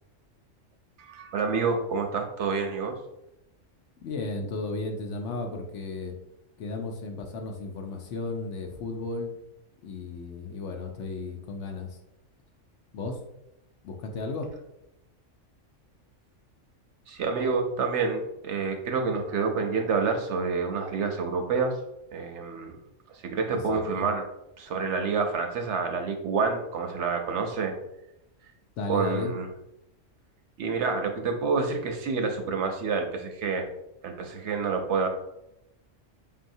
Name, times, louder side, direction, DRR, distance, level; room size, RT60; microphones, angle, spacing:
voice 1, 1.0-3.0 17.1-21.7 22.1-22.8 23.2-24.2 24.6-27.7 28.9-29.5 30.6-33.7 34.0-35.1, right 4 dB, 70° right, 4 dB, 0.8 m, -28 dB
voice 2, 4.0-6.1 6.6-9.3 9.8-12.0 12.9-13.2 13.8-14.5 23.7-24.1 28.8-29.3, left 3 dB, 70° left, 3 dB, 0.9 m, -34 dB
5.2 x 2.7 x 2.6 m, 0.85 s
omnidirectional pair, 1.4 m